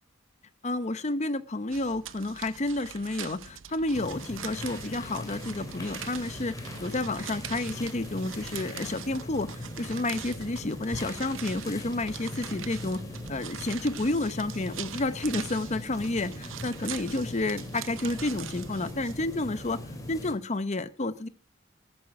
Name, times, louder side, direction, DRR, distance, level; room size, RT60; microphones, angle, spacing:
voice 1, 0.6-13.0 13.3-19.8 20.1-21.3, left 2 dB, 35° left, 13 dB, 0.8 m, -30 dB
sound 1, 1.7-19.7, right 10 dB, 80° right, 0.7 m, -43 dB
sound 2, 3.9-20.4, left 1 dB, 20° left, 3.3 m, -40 dB
14.0 x 8.7 x 6.0 m, 0.42 s
head